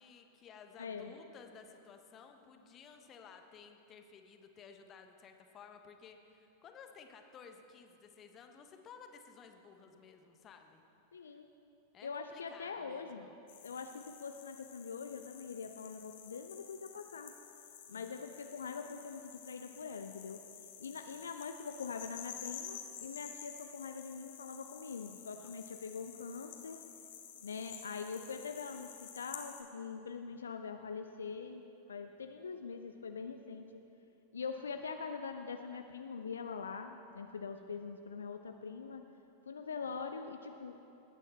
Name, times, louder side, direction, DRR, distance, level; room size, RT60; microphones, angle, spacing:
voice 1, 0.0-10.8 11.9-13.4 17.9-18.3 25.4-25.5 37.6-37.8 39.8-40.0, left 6 dB, 30° left, 5 dB, 1.1 m, -56 dB
voice 2, 0.8-1.1 11.1-11.5 12.0-13.3 13.6-17.3 17.9-20.4 20.8-26.8 27.4-31.6 31.9-33.8 34.3-39.0 39.5-40.8, left 5 dB, 70° left, 6 dB, 0.5 m, -43 dB
sound 1, 13.5-29.6, left 9 dB, 55° left, 1.3 m, -51 dB
19.5 x 9.0 x 4.3 m, 2.8 s
figure-of-eight pair, 90°, 0 cm